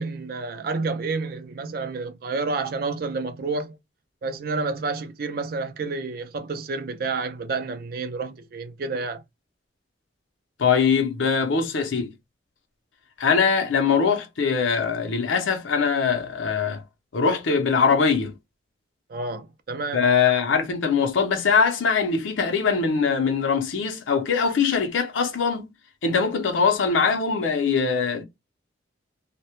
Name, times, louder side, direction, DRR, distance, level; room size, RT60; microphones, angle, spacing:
voice 1, 0.0-3.8 4.2-9.2 19.1-20.0, right 3 dB, 50° right, 0.4 m, -29 dB
voice 2, 10.6-12.1 13.2-16.8 17.1-18.3 19.9-25.7 26.0-28.2, left 5 dB, 85° left, 0.5 m, -22 dB
2.1 x 2.0 x 2.8 m
head